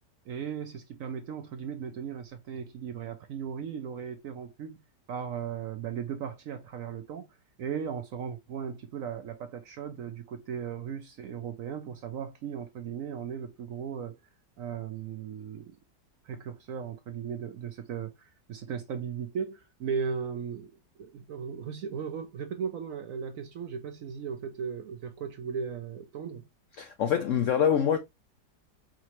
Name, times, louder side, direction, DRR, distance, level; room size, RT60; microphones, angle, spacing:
voice 1, 0.3-4.8 5.1-14.2 14.6-15.8 16.2-20.7 21.0-26.5, right 7 dB, 70° right, 0.8 m, -37 dB
voice 2, 26.8-28.0, left 8 dB, 75° left, 0.7 m, -25 dB
4.8 x 3.1 x 3.0 m
omnidirectional pair, 1.9 m